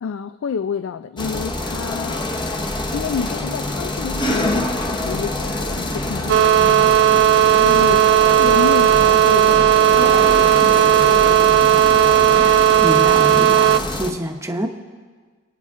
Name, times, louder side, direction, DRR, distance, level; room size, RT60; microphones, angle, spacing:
voice 1, 0.0-2.2 2.9-7.0 7.5-11.1, left 6 dB, 60° left, 12 dB, 0.3 m, -29 dB
sound 1, 1.2-14.1, left 1 dB, 20° left, 0.8 m, -26 dB
sound 2, 6.3-13.8, right 11 dB, 55° right, 0.3 m, -14 dB
voice 2, 12.8-14.7, equal, 15° right, 4 dB, 0.9 m, -26 dB
25.0 x 9.4 x 3.6 m, 1.5 s
head